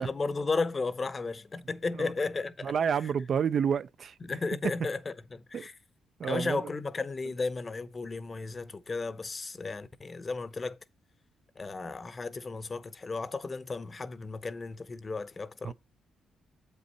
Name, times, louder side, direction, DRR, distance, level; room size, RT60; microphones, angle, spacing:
voice 1, 0.0-2.7 4.2-5.7 6.2-10.8 11.6-15.7, left 3 dB, 30° left, 0.7 m, -34 dB
voice 2, 2.6-4.1 5.5-5.7 6.2-6.6 15.6-15.7, right 7 dB, 55° right, 0.4 m, -29 dB
7.7 x 5.5 x 4.2 m
cardioid pair, 90°, 0 cm